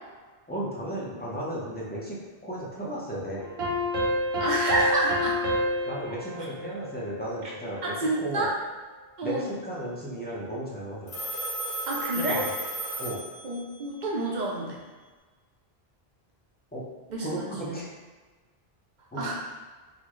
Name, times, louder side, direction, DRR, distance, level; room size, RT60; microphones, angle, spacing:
voice 1, 0.5-3.5 5.9-8.5 9.2-11.1 12.2-12.4 13.0-13.2 16.7-16.8 17.2-17.9 19.1-19.3, right 1 dB, 15° left, -6 dB, 0.5 m, -34 dB
sound 1, 3.4-7.6, left 1 dB, 75° right, 1.0 m, -29 dB
voice 2, 4.4-5.4 7.8-8.5 9.2-9.5 11.9-12.5 13.4-14.8 17.1-17.8 19.2-19.4, right 2 dB, 55° right, -3 dB, 0.7 m, -28 dB
Telephone, 11.1-13.8, right 2 dB, 65° left, 1.7 m, -34 dB
4.0 x 2.1 x 3.0 m, 1.3 s
omnidirectional pair, 1.0 m